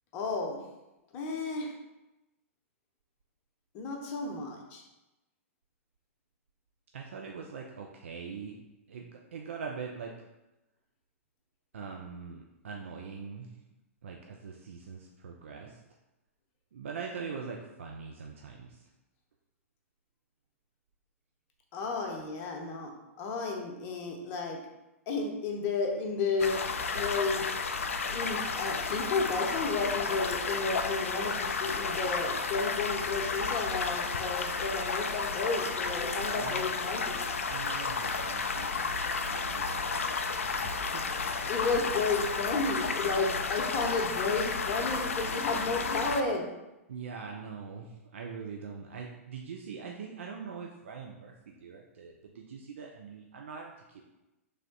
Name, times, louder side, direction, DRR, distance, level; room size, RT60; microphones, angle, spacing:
voice 1, 0.1-0.6 1.1-1.7 3.7-4.8 21.7-22.9 23.2-24.6 25.1-26.6 26.9-27.4 28.1-37.2 41.5-46.5, left 3 dB, 35° left, 1 dB, 0.7 m, -32 dB
voice 2, 6.9-8.6 8.9-10.2 11.7-13.5 14.0-15.8 16.7-18.9 36.3-36.7 37.5-41.5 46.9-54.0, right 5 dB, 60° right, 1 dB, 0.4 m, -43 dB
sound 1, 26.4-46.2, left 4 dB, 65° left, 0.4 m, -32 dB
3.5 x 3.3 x 3.9 m, 0.98 s
figure-of-eight pair, 105°, 8 cm